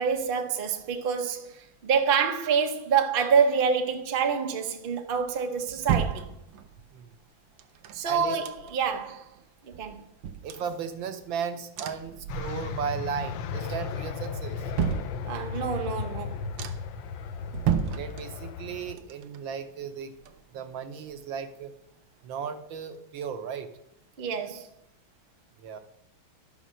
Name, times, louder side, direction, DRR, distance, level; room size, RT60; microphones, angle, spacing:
voice 1, 0.0-6.3 7.9-9.3 9.7-10.1 15.2-16.4 24.2-24.7, right 6 dB, 50° right, 0.6 m, -27 dB
sound 1, 5.1-6.9 7.6-9.0 9.4-9.5 9.7-11.3 11.8-12.9 13.3-13.8 14.2-15.7 16.1-16.2 16.6-17.1 17.5-18.7 19.0-20.8 21.1-21.2, right 9 dB, 90° right, 1.6 m, -33 dB
voice 2, 8.0-8.4 10.4-14.6 17.9-20.1 20.5-21.7 22.2-23.7 25.6-25.8, right 7 dB, 70° right, 1.5 m, -35 dB
sound 2, 12.3-19.0, left 5 dB, 70° left, 1.3 m, -35 dB
11.5 x 5.7 x 6.2 m
omnidirectional pair, 2.3 m